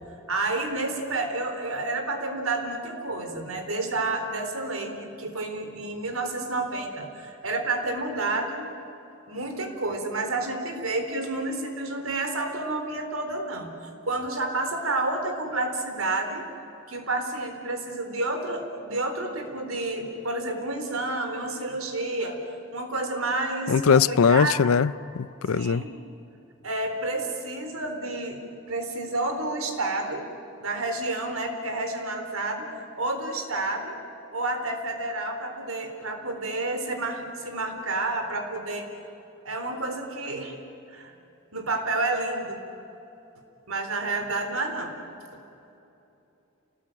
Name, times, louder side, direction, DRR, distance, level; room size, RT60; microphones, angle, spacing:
voice 1, 0.3-8.7 9.3-16.5 16.9-24.7 25.5-25.9 26.6-28.4 28.7-30.3 30.6-32.7 33.0-34.0 34.3-38.9 39.4-40.5 40.9-41.1 41.5-42.6 43.7-44.9, right 2 dB, 85° right, 3.8 m, -30 dB
voice 2, 23.7-25.8, left 6 dB, 90° left, 0.5 m, -21 dB
28.5 x 19.0 x 8.9 m
head